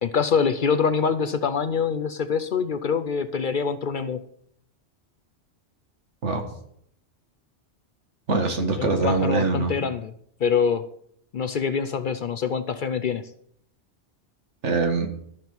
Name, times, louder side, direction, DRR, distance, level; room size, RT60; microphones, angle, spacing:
voice 1, 0.0-4.2 8.8-10.1 10.4-10.9 11.3-13.3, left 6 dB, 55° left, 11 dB, 0.6 m, -25 dB
voice 2, 8.3-9.7 14.6-15.1, right 3 dB, 80° right, 5 dB, 2.0 m, -23 dB
13.0 x 6.0 x 7.1 m, 0.69 s
omnidirectional pair, 1.2 m